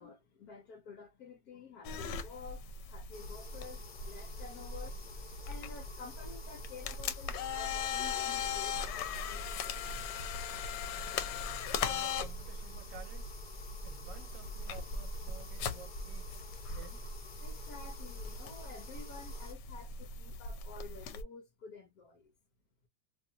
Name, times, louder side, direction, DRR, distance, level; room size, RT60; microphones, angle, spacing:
voice 1, 0.0-10.2 17.4-22.3, left 4 dB, 65° left, 1.1 m, -51 dB
sound 1, 1.8-21.2, left 5 dB, 80° left, 1.2 m, -40 dB
sound 2, 3.1-19.5, left 2 dB, 35° left, 0.8 m, -49 dB
voice 2, 10.4-10.8 11.9-13.3 13.8-16.4 16.7-17.1, right 9 dB, 65° right, 0.8 m, -53 dB
3.0 x 2.5 x 2.7 m
omnidirectional pair, 1.9 m